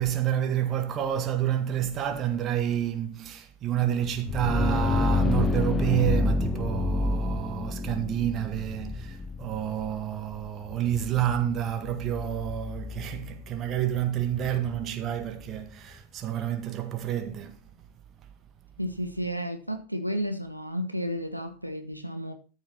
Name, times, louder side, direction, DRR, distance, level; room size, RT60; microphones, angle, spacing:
voice 1, 0.0-17.6, right 11 dB, 30° right, 1.8 m, -29 dB
sound 1, 4.0-15.7, left 3 dB, 15° left, 0.9 m, -30 dB
voice 2, 18.8-22.3, equal, 90° right, 1.4 m, -32 dB
13.5 x 6.6 x 4.4 m
figure-of-eight pair, 90°, 0 cm